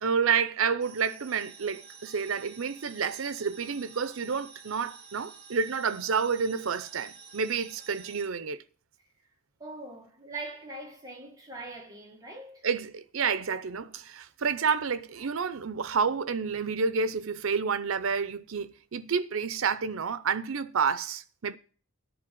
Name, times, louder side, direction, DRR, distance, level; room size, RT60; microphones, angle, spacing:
voice 1, 0.0-8.6 12.6-21.6, right 6 dB, 85° right, 0.6 m, -29 dB
sound 1, 0.8-8.3, right 5 dB, 50° right, 1.9 m, -50 dB
voice 2, 9.6-12.7, right 2 dB, 20° right, 2.0 m, -42 dB
10.5 x 4.5 x 7.6 m
head